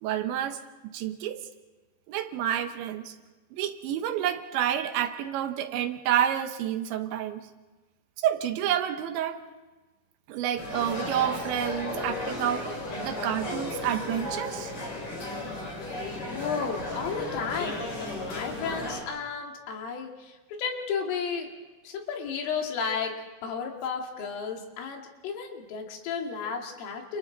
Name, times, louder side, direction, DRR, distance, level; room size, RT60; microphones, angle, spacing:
voice 1, 0.0-1.5 2.1-3.1 3.5-7.5 8.2-9.4 10.3-12.7 13.0-14.7, right 10 dB, 75° right, 7 dB, 3.1 m, -29 dB
sound 1, 10.6-19.0, left 1 dB, 30° left, 5.5 m, -34 dB
voice 2, 16.3-17.8 18.2-21.5 21.8-23.1 23.4-27.2, left 6 dB, 85° left, 2 dB, 5.0 m, -33 dB
29.5 x 29.0 x 4.0 m, 1.2 s
omnidirectional pair, 5.7 m